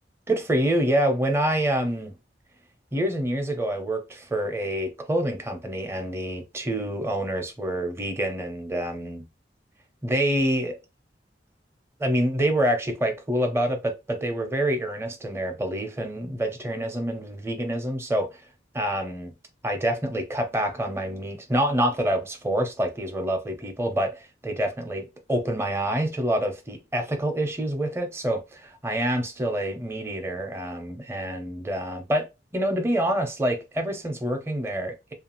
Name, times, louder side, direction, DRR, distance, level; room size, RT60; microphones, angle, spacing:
voice 1, 0.3-2.2 2.9-9.2 10.0-10.8 12.0-18.4 18.7-19.3 19.6-32.3 32.5-35.1, right 1 dB, 15° right, 0.5 m, -27 dB
2.7 x 2.4 x 2.9 m
head